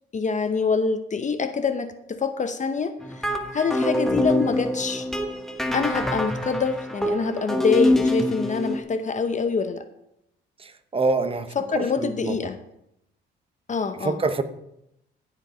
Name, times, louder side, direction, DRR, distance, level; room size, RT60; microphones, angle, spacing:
voice 1, 0.1-5.1 5.7-9.8 11.6-12.6 13.7-14.2, left 5 dB, 40° left, 9 dB, 0.9 m, -25 dB
sound 1, 3.0-8.8, left 1 dB, ahead, 1.4 m, -25 dB
voice 2, 10.6-11.5 11.7-12.4 13.9-14.4, right 3 dB, 30° right, 9 dB, 1.1 m, -26 dB
15.0 x 5.3 x 5.1 m, 0.81 s
cardioid pair, 90°, 20 cm